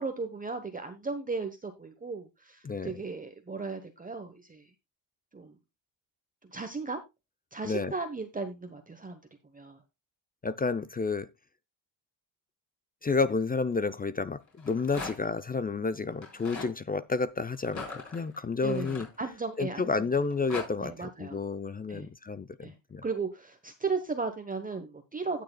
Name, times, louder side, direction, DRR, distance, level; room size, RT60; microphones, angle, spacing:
voice 1, 0.0-4.6 5.3-5.5 6.5-7.0 7.5-9.2 9.5-9.8 18.6-19.9 20.8-21.4 21.9-22.1 22.6-22.8 23.0-25.4, right 4 dB, 20° right, 1.0 m, -36 dB
voice 2, 2.6-3.0 7.6-7.9 10.4-11.3 13.0-19.1 19.6-23.0, left 4 dB, 20° left, 0.5 m, -30 dB
Rattle, 14.5-15.4 16.1-16.7 17.6-19.6 20.1-20.7, left 4 dB, 40° left, 4.8 m, -41 dB
16.5 x 6.6 x 2.3 m
cardioid pair, 95°, 45 cm